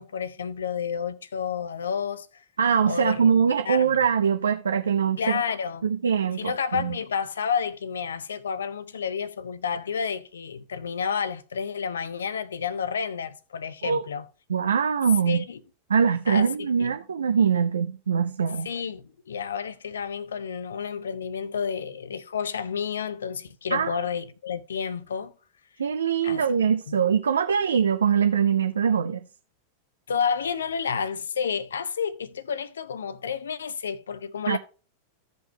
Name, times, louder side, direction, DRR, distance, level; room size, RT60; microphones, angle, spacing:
voice 1, 0.0-2.4 2.8-4.0 5.2-5.9 6.4-14.3 15.3-15.6 16.3-16.9 18.6-25.3 26.2-26.4 26.9-27.0 30.1-34.6, left 6 dB, 70° left, 0.6 m, -30 dB
voice 2, 2.6-5.4 5.8-7.0 13.8-14.0 14.5-15.4 15.9-18.7 23.7-24.0 25.8-29.2 34.5-34.6, right 7 dB, 70° right, 0.4 m, -23 dB
16.0 x 5.3 x 2.2 m
figure-of-eight pair, 90°, 0 cm